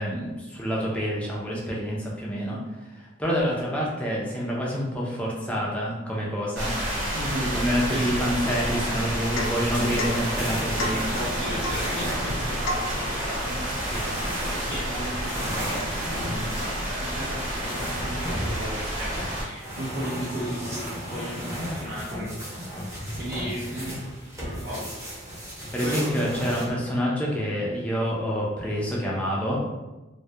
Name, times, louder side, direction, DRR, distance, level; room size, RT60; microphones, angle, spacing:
voice 1, 0.0-2.6 2.9-6.7 7.5-11.0 13.9-14.1 25.7-29.6, equal, 5° left, -5 dB, 0.4 m, -27 dB
sound 1, 6.6-19.4, equal, 75° right, 0.9 m, -30 dB
voice 2, 7.1-7.6 7.8-8.3 9.7-10.3 10.8-15.7 16.0-19.1 19.4-24.0 24.4-24.8 25.8-26.3, equal, 50° right, -7 dB, 0.5 m, -35 dB
Domestic sounds home sounds / Chink clink / Drip, 9.4-9.7 10.0-10.2 10.8-11.1 11.6-11.9 12.6-13.0, left 1 dB, 80° left, 0.4 m, -30 dB
sound 2, 9.5-26.7, equal, 15° right, 0.8 m, -35 dB
2.2 x 2.1 x 2.7 m, 1.1 s
head